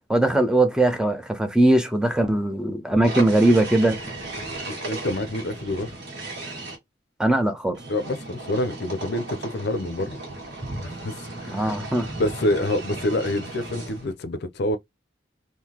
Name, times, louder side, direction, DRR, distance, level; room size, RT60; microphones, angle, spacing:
voice 1, 0.1-4.0 7.2-7.8 11.5-12.1, right 1 dB, 5° right, 0.5 m, -20 dB
sound 1, 3.0-6.7 7.7-14.1, right 2 dB, 60° right, 1.7 m, -35 dB
voice 2, 4.7-5.9 7.9-10.2 10.8-11.7 12.1-14.8, left 1 dB, 60° left, 0.6 m, -27 dB
3.8 x 2.7 x 2.9 m
head